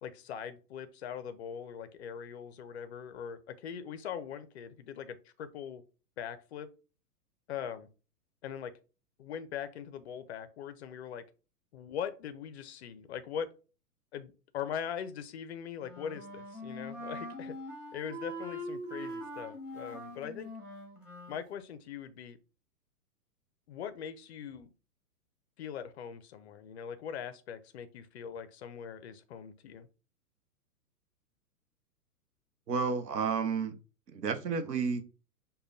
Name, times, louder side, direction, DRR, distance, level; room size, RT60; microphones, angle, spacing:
voice 1, 0.0-5.8 6.2-6.7 7.5-7.9 8.4-8.7 9.2-11.2 11.7-13.5 14.1-17.5 17.9-20.5 21.3-22.4 23.7-24.7 25.6-29.9, left 8 dB, 45° left, 0.4 m, -41 dB
Wind instrument woodwind instrument, 15.8-21.4, equal, ahead, 1.1 m, -42 dB
voice 2, 32.7-33.8 34.1-35.0, right 5 dB, 90° right, 0.8 m, -31 dB
5.0 x 2.2 x 2.5 m
hypercardioid pair, 125°, 47 cm